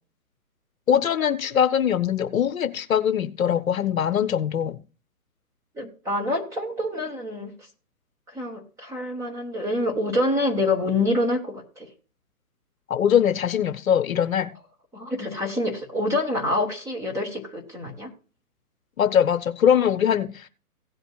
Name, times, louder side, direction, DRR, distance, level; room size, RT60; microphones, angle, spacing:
voice 1, 0.9-4.8 12.9-14.5 19.0-20.5, left 8 dB, 60° left, 0.8 m, -22 dB
voice 2, 5.7-7.5 8.3-11.9 14.9-18.1, left 1 dB, 5° right, 1.0 m, -26 dB
16.5 x 7.9 x 2.3 m
hypercardioid pair, 140°, 45 cm